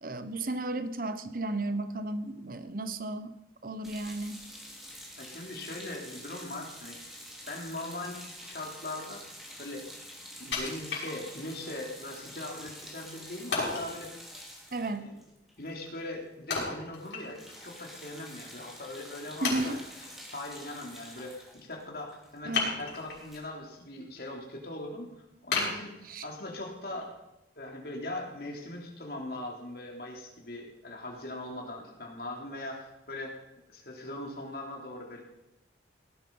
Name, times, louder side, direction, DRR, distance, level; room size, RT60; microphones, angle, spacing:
voice 1, 0.0-3.3 3.6-4.4 14.7-15.1 19.4-19.8 22.4-22.7 26.1-26.3, right 2 dB, 50° right, 11 dB, 1.0 m, -34 dB
sound 1, 3.8-16.2 16.5-16.7 16.9-23.4, equal, ahead, 3.0 m, -48 dB
voice 2, 5.2-7.0 7.5-9.3 9.6-9.9 10.4-14.1 15.0-15.1 15.6-19.8 20.3-25.2 25.4-27.1 27.6-33.4 33.7-35.2, left 1 dB, 55° left, 0 dB, 3.5 m, -40 dB
Wood, 10.5-11.6 12.1-12.2 13.5-13.9 16.5-17.6 18.0-18.1 18.7-18.8 19.4-20.1 22.5-23.3 23.7-24.2 24.6-24.7 25.5-26.5 27.0-27.1, left 4 dB, 85° left, 6.2 m, -33 dB
18.0 x 11.5 x 5.5 m, 0.91 s
head